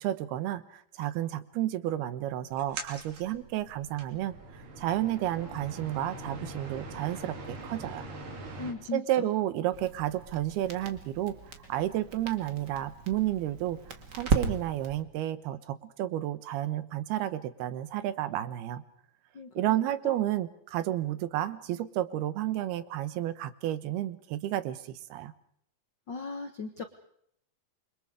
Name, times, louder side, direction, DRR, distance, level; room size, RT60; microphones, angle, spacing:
voice 1, 0.0-8.1 8.9-11.4 11.7-13.8 14.1-18.8 19.5-25.3, right 13 dB, 85° right, 14 dB, 3.1 m, -31 dB
sound 1, 2.5-8.7, right 2 dB, 60° right, 4.6 m, -43 dB
voice 2, 8.6-9.0 19.3-19.7 20.0-20.2 26.1-26.8, left 4 dB, 75° left, 7 dB, 1.0 m, -38 dB
Crackle, 9.7-15.0, right 4 dB, 35° right, 1.9 m, -35 dB
28.0 x 24.5 x 4.9 m, 0.68 s
omnidirectional pair, 4.4 m